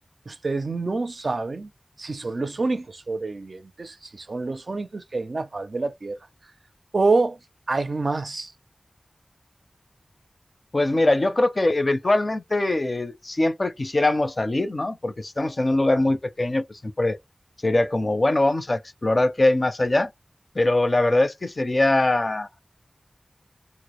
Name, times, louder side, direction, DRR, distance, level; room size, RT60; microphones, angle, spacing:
voice 1, 0.3-1.7 2.0-6.2 6.9-7.4 7.7-8.5, right 3 dB, 70° right, 0.4 m, -27 dB
voice 2, 10.7-17.2 17.6-20.1 20.6-22.5, left 2 dB, 50° left, 0.5 m, -22 dB
2.0 x 2.0 x 2.9 m
wide cardioid pair, 45°, 0 cm